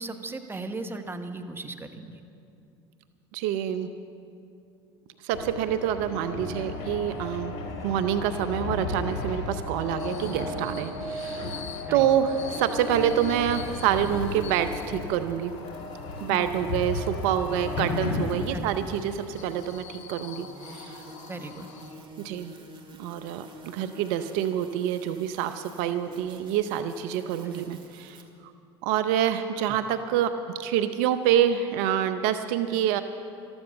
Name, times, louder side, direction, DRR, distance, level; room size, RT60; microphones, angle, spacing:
voice 1, 0.0-2.2 11.9-12.1 16.3-16.4 18.5-18.7 21.3-21.7 27.4-27.7, right 3 dB, 15° right, 7 dB, 1.2 m, -37 dB
voice 2, 3.3-3.9 5.2-7.5 7.8-11.6 11.9-15.5 16.2-21.0 22.2-22.5 23.0-28.5 28.8-33.0, right 10 dB, 65° right, 10 dB, 0.6 m, -27 dB
sound 1, 5.3-18.5, left 3 dB, 60° left, 3.3 m, -34 dB
sound 2, 6.6-22.3, left 7 dB, 80° left, 1.1 m, -47 dB
sound 3, 12.8-28.2, right 1 dB, 35° right, 2.0 m, -50 dB
13.5 x 13.5 x 7.0 m, 2.6 s
hypercardioid pair, 80°, 14 cm